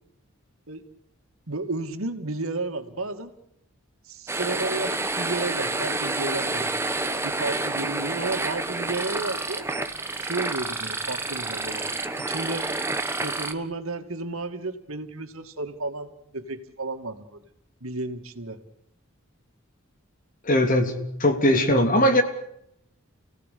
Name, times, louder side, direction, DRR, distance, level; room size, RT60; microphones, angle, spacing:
voice 1, 1.5-3.3 4.1-6.8 7.2-9.6 10.2-11.8 12.2-12.6 13.2-17.4 17.8-18.6, right 2 dB, 80° right, 7 dB, 2.5 m, -32 dB
sound 1, 4.3-13.5, right 2 dB, 10° right, 1.5 m, -29 dB
voice 2, 20.4-22.2, left 1 dB, 40° left, 6 dB, 3.3 m, -20 dB
30.0 x 17.5 x 8.6 m, 0.78 s
head